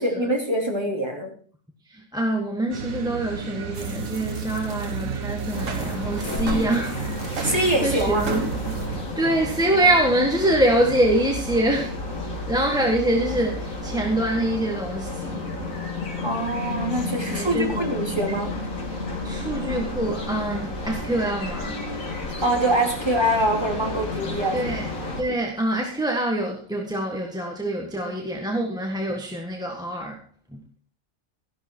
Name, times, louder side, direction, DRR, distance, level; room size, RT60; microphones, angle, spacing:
voice 1, 0.0-1.3 7.4-8.3 16.2-18.5 21.7-22.0 22.4-24.7 28.0-28.1, right 1 dB, 20° right, 2.8 m, -24 dB
voice 2, 1.9-7.0 7.4-8.4 8.9-12.0 12.5-15.5 17.3-17.9 19.2-21.8 24.5-24.9 25.2-30.2 30.5-30.6, right 1 dB, 5° right, 1.5 m, -25 dB
sound 1, 2.7-9.0, right 5 dB, 85° right, 1.6 m, -32 dB
sound 2, 3.7-8.9, right 4 dB, 70° right, 2.1 m, -35 dB
sound 3, 5.5-25.2, left 1 dB, 75° left, 2.9 m, -32 dB
13.5 x 11.5 x 4.5 m
omnidirectional pair, 1.4 m